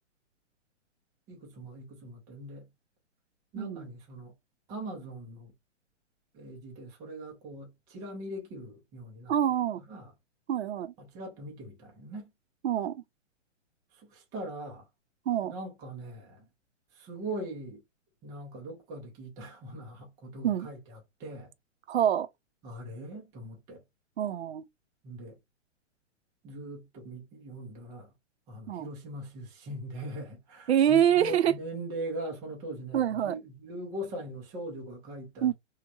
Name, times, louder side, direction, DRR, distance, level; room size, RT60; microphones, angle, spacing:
voice 1, 1.3-2.7 3.5-4.3 4.7-5.5 6.3-9.3 9.9-10.1 11.0-12.3 13.9-14.9 15.4-16.5 16.9-17.8 18.2-21.5 22.6-23.8 25.0-25.4 26.4-28.1 28.5-35.5, right 1 dB, 10° right, 0.4 m, -41 dB
voice 2, 3.6-3.9 9.3-9.8 10.5-10.9 12.6-13.0 15.3-15.5 20.4-20.7 21.9-22.3 24.2-24.7 28.7-28.9 30.7-31.5 32.9-33.4 35.4-35.5, right 10 dB, 60° right, 0.6 m, -26 dB
3.1 x 2.1 x 2.3 m
figure-of-eight pair, 120°, 37 cm